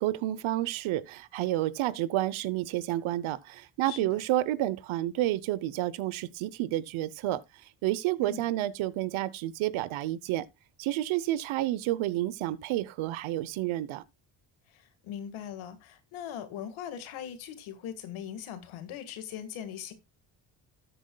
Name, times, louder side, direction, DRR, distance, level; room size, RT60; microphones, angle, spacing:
voice 1, 0.0-7.4 7.8-10.5 10.8-14.0, right 15 dB, 80° right, 0.8 m, -30 dB
voice 2, 3.8-4.2 8.2-8.4 14.7-19.9, left 9 dB, 85° left, 1.8 m, -40 dB
13.0 x 7.8 x 2.2 m
cardioid pair, 75°, 47 cm